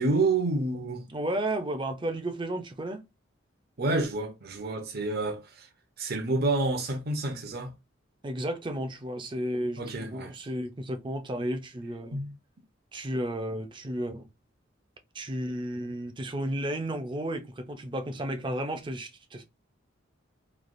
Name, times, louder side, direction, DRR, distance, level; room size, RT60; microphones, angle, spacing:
voice 1, 0.0-1.1 3.8-5.7 6.0-7.7 9.8-10.3 12.1-12.4, right 2 dB, 55° right, 0.8 m, -28 dB
voice 2, 1.1-3.0 8.2-12.2 12.9-14.3 15.1-19.4, right 1 dB, 25° right, 0.5 m, -33 dB
3.2 x 2.4 x 2.5 m
head